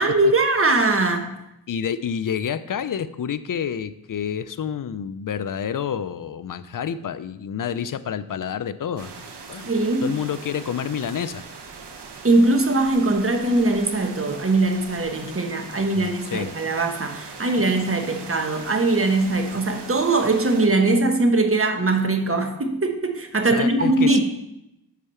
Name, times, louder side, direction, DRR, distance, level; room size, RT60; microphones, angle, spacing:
voice 1, 0.0-1.3 9.6-10.1 12.2-24.2, right 2 dB, 35° right, 5 dB, 1.2 m, -21 dB
voice 2, 1.7-9.7 10.0-11.4 16.0-16.5 23.5-24.2, left 8 dB, 55° left, 14 dB, 0.5 m, -29 dB
sound 1, 9.0-20.7, right 5 dB, 85° right, 1.0 m, -40 dB
8.4 x 4.8 x 5.6 m, 0.83 s
wide cardioid pair, 80°, 39 cm